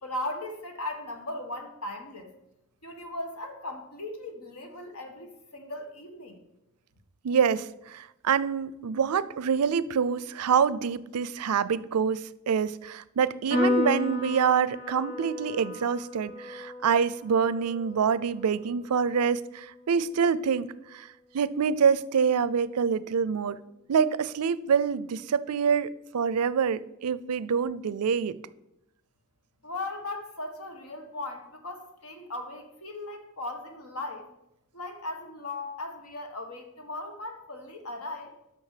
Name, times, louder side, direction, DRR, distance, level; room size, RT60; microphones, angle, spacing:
voice 1, 0.0-2.3 2.8-6.4 29.6-34.3 34.7-38.3, left 2 dB, 75° left, 1.6 m, -38 dB
voice 2, 7.2-21.1 21.3-23.6 23.9-28.4, right 6 dB, 85° right, 0.5 m, -26 dB
Piano, 13.5-20.2, left 2 dB, 30° left, 4.2 m, -33 dB
8.7 x 6.2 x 6.7 m
head